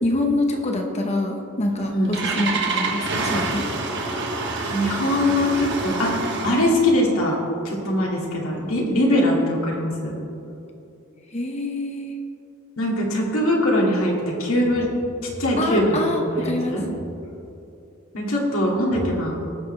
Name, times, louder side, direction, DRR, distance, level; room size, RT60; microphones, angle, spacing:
voice 1, 0.0-3.7 11.3-12.2 15.6-16.8, left 1 dB, 30° left, 2 dB, 0.9 m, -25 dB
Engine starting, 1.6-6.8, right 3 dB, 55° right, 1.5 m, -27 dB
voice 2, 4.7-6.1 6.4-7.4 7.6-10.2 12.8-14.1 14.4-14.9 15.2-16.8 18.1-19.4, left 1 dB, 75° left, -3 dB, 2.4 m, -22 dB
19.5 x 6.6 x 3.3 m, 2.8 s
head